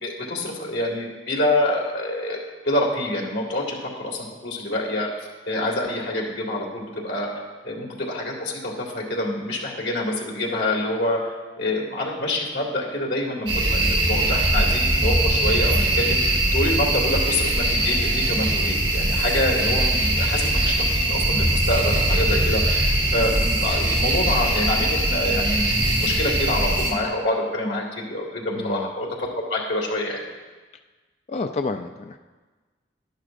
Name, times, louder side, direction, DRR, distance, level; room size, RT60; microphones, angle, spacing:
voice 1, 0.0-2.4 2.6-7.3 7.6-16.2 16.5-30.2, left 1 dB, 75° left, -1 dB, 2.0 m, -26 dB
sound 1, 13.5-26.9, right 1 dB, 30° right, 2.3 m, -21 dB
voice 2, 28.6-28.9 31.3-32.2, left 3 dB, 35° left, 6 dB, 0.3 m, -29 dB
11.5 x 11.0 x 2.6 m, 1.3 s
head